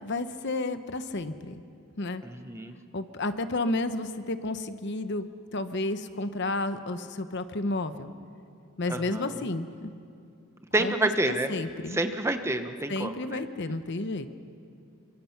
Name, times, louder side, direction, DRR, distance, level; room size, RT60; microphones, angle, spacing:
voice 1, 0.0-1.6 2.0-2.2 2.9-8.1 8.8-9.9 10.8-12.0 12.9-14.3, left 2 dB, 50° left, 10 dB, 1.0 m, -31 dB
voice 2, 2.2-2.7 8.9-9.4 10.7-11.5 11.9-13.4, right 1 dB, 10° right, 7 dB, 0.9 m, -28 dB
27.0 x 24.5 x 5.9 m, 2.4 s
head